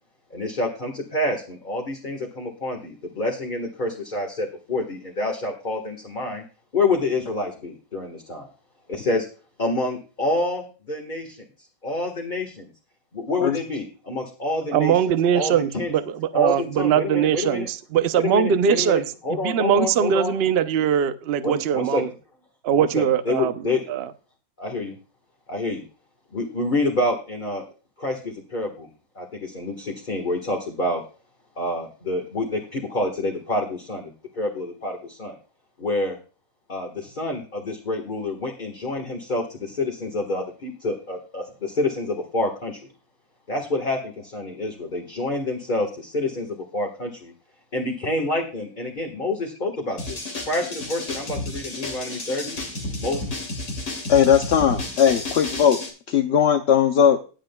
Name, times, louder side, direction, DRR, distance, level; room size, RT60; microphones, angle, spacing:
voice 1, 0.3-6.4 6.7-8.5 8.9-9.3 9.6-11.5 11.8-12.7 13.1-15.0 15.3-15.9 16.3-17.7 18.2-20.3 21.4-22.0 22.7-23.8 24.6-24.9 25.5-25.8 26.3-27.6 28.0-28.9 29.1-31.0 31.6-34.1 34.3-35.4 35.8-36.2 36.7-42.8 43.5-47.3 47.7-50.2 50.4-52.6 53.0-53.2, left 2 dB, 30° left, 0 dB, 1.6 m, -27 dB
voice 2, 14.7-19.1 19.4-22.1 22.6-23.5 23.9-24.1, right 8 dB, 55° right, 12 dB, 0.7 m, -21 dB
sound 1, 50.0-55.9, left 2 dB, 80° left, 3.1 m, -32 dB
voice 3, 54.1-55.8 56.1-57.2, left 8 dB, 55° left, 6 dB, 0.8 m, -18 dB
19.0 x 7.6 x 2.3 m, 0.36 s
omnidirectional pair, 1.6 m